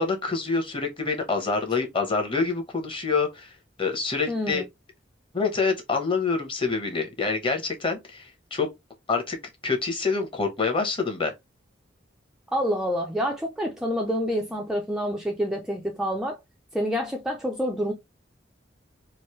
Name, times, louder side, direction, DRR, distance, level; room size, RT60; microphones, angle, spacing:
voice 1, 0.0-3.5 3.8-4.6 5.3-8.7 9.1-9.4 9.6-11.3, left 4 dB, 25° left, 0.9 m, -26 dB
voice 2, 4.3-4.6 12.5-16.4 16.7-17.9, equal, 5° right, 0.4 m, -27 dB
3.1 x 2.6 x 3.0 m
head